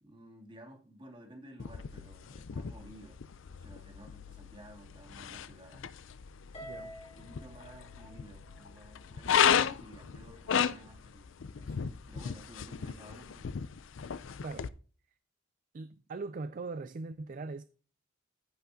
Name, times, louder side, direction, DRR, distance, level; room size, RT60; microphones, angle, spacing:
voice 1, 0.0-3.2 3.5-5.9 6.6-6.7 7.2-13.6, right 1 dB, 25° right, 2.1 m, -54 dB
sound 1, 1.6-14.7, left 8 dB, 70° left, 0.5 m, -35 dB
Harp, 6.5-9.0, equal, 30° left, 2.1 m, -49 dB
voice 2, 15.7-17.6, right 3 dB, 40° right, 0.4 m, -40 dB
14.5 x 5.8 x 2.8 m
head